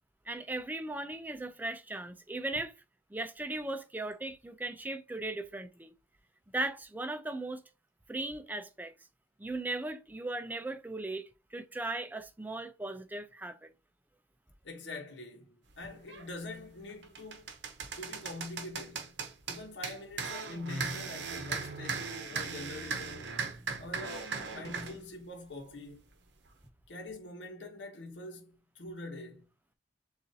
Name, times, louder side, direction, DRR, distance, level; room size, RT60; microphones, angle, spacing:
voice 1, 0.3-2.7 3.1-5.9 6.5-7.6 8.1-8.9 9.4-13.7, right 2 dB, 10° right, 0.4 m, -37 dB
voice 2, 14.6-17.5 17.9-19.2 19.5-23.3 23.8-26.0 26.9-29.5, left 2 dB, 80° left, 1.0 m, -44 dB
sound 1, 16.1-16.3 16.8-25.0, right 5 dB, 75° right, 0.8 m, -38 dB
6.8 x 2.5 x 2.7 m
head